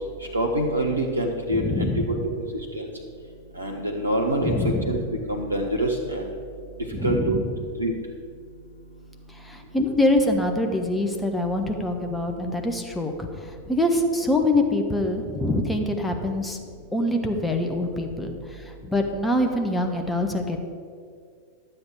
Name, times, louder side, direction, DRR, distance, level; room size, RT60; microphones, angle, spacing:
voice 1, 0.3-2.2 2.7-2.9 3.6-5.0 5.3-6.2 7.0-7.4 7.8-7.9, right 1 dB, 80° right, 0 dB, 0.9 m, -25 dB
voice 2, 1.5-2.3 4.4-5.1 6.9-7.5 9.3-16.6 16.9-20.6, left 1 dB, 5° left, 3 dB, 1.1 m, -25 dB
11.5 x 7.6 x 4.8 m, 2.2 s
figure-of-eight pair, 90°, 0 cm